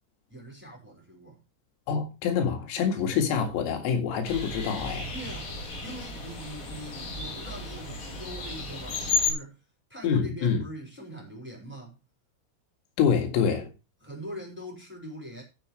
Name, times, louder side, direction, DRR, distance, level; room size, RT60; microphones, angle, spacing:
voice 1, 0.3-1.4 5.1-9.6 9.9-12.0 14.0-15.4, equal, ahead, 4.6 m, -42 dB
voice 2, 1.9-5.1 10.0-10.6 13.0-13.7, left 7 dB, 85° left, 4.7 m, -26 dB
sound 1, 4.2-9.3, left 4 dB, 50° left, 4.3 m, -33 dB
16.5 x 7.4 x 3.2 m
omnidirectional pair, 5.9 m